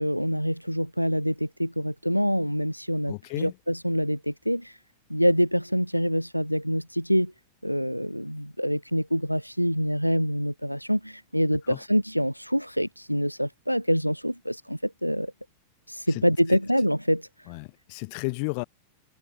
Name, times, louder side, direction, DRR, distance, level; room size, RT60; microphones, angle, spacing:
voice 1, 0.0-4.8 5.1-7.3 7.6-15.3 15.9-17.3, equal, 90° left, 1.1 m, -26 dB
voice 2, 3.1-3.5 11.7-11.8 16.1-16.6 17.5-18.6, left 36 dB, 45° left, 7.1 m, -33 dB
figure-of-eight pair, 90°, 0 cm